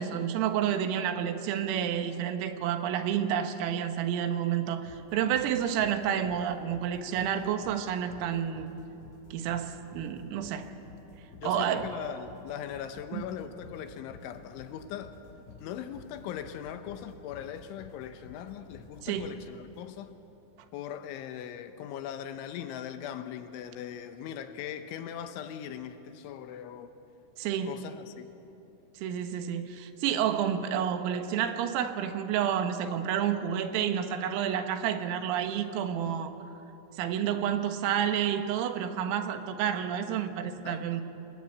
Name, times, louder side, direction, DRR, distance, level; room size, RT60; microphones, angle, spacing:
voice 1, 0.0-8.7 9.3-10.7 11.4-11.9 13.1-13.3 19.0-19.3 27.4-27.7 29.0-36.3 36.9-41.0, right 9 dB, 85° right, 8 dB, 3.9 m, -30 dB
sound 1, 4.9-20.1, left 3 dB, 50° left, 4.8 m, -52 dB
voice 2, 11.4-15.2 15.6-20.1 20.7-26.9 27.6-28.3 40.6-40.9, left 9 dB, 75° left, 9 dB, 3.2 m, -40 dB
26.5 x 21.0 x 8.5 m, 2.9 s
omnidirectional pair, 5.9 m